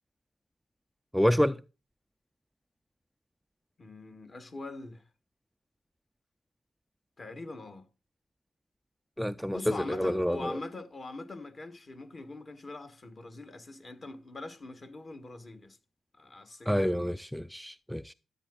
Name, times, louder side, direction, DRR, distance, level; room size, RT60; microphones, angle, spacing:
voice 1, 1.1-1.6 9.2-10.6 16.7-18.1, equal, ahead, 0.3 m, -28 dB
voice 2, 3.8-5.0 7.2-7.8 9.5-15.8 16.2-16.9, left 2 dB, 40° left, 1.4 m, -42 dB
13.5 x 8.0 x 2.4 m
cardioid pair, 70°, 0 cm